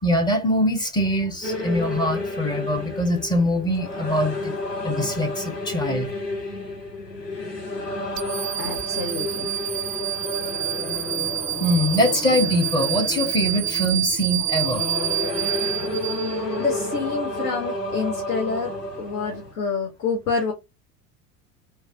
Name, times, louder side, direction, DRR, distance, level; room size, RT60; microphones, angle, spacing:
voice 1, 0.0-4.6 4.8-6.1 11.6-14.9, equal, 10° left, 0.6 m, -23 dB
sound 1, 1.4-19.5, left 2 dB, 85° left, 1.2 m, -31 dB
sound 2, 8.2-16.6, right 12 dB, 45° right, 0.5 m, -28 dB
voice 2, 8.6-9.5 16.6-20.5, left 4 dB, 65° left, 1.0 m, -27 dB
3.1 x 2.3 x 2.8 m
figure-of-eight pair, 75°, 47 cm